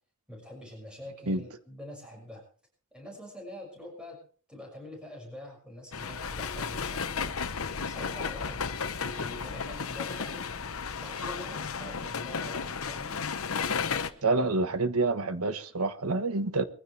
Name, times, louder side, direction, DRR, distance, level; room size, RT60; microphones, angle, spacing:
voice 1, 0.3-2.4 2.9-4.2 4.5-7.4 7.9-8.7 9.0-10.5 11.0-13.2 14.2-14.5, left 1 dB, 5° right, -1 dB, 6.2 m, -45 dB
sound 1, 5.9-14.1, left 5 dB, 70° left, 1.0 m, -33 dB
voice 2, 14.2-16.6, right 3 dB, 75° right, 10 dB, 1.3 m, -27 dB
22.0 x 15.0 x 3.4 m, 0.41 s
head